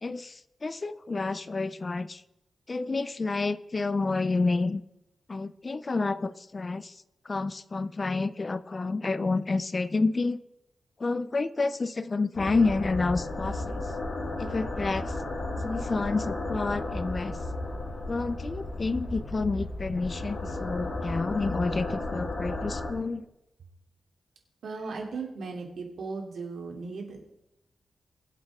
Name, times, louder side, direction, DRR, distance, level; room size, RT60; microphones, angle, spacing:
voice 1, 0.0-2.2 2.7-4.8 5.3-6.9 7.3-10.4 11.0-13.8 14.4-15.1 15.6-17.4 18.1-23.2, left 3 dB, 30° left, 15 dB, 0.5 m, -29 dB
sound 1, 12.3-22.9, left 2 dB, 65° left, 3.6 m, -34 dB
voice 2, 24.6-27.2, right 4 dB, 80° right, 1 dB, 3.0 m, -37 dB
22.5 x 8.3 x 3.7 m, 0.88 s
wide cardioid pair, 125°, 0 cm